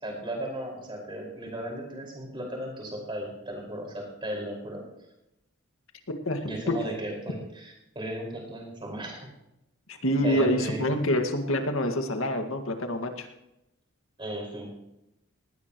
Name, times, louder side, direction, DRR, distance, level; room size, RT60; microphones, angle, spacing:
voice 1, 0.0-4.8 6.4-9.3 10.2-10.8 14.2-14.7, right 1 dB, 25° right, 0 dB, 5.2 m, -36 dB
voice 2, 6.3-6.8 9.9-13.3, left 1 dB, 75° left, 5 dB, 2.0 m, -26 dB
19.5 x 17.0 x 3.1 m, 0.89 s
head